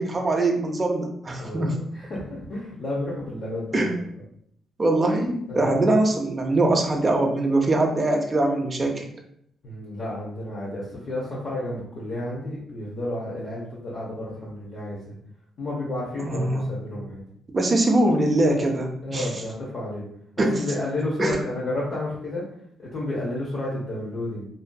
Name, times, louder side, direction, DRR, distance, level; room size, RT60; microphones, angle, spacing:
voice 1, 0.0-1.7 3.7-3.9 4.8-9.1 16.2-16.7 17.5-19.3 20.4-20.6 21.2-21.4, right 2 dB, 30° right, 2 dB, 0.5 m, -22 dB
voice 2, 1.4-4.0 5.5-5.9 9.6-15.2 15.6-17.2 19.0-20.1 20.4-22.5 22.8-24.5, left 1 dB, 55° left, -6 dB, 0.7 m, -31 dB
2.6 x 2.4 x 2.2 m, 0.69 s
cardioid pair, 95°, 0 cm